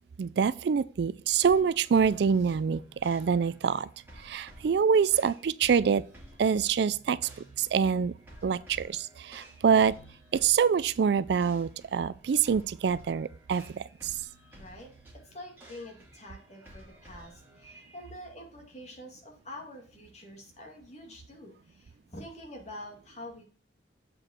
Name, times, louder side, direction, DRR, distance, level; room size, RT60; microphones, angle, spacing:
voice 1, 0.2-3.9 4.2-6.0 6.4-7.2 7.6-8.1 8.4-9.9 10.3-14.2, right 6 dB, 65° right, 0.3 m, -25 dB
sound 1, 1.4-18.1, right 1 dB, 10° right, 2.5 m, -54 dB
voice 2, 14.6-14.9 15.2-23.4, left 1 dB, 40° left, 2.2 m, -46 dB
7.7 x 5.1 x 4.4 m
head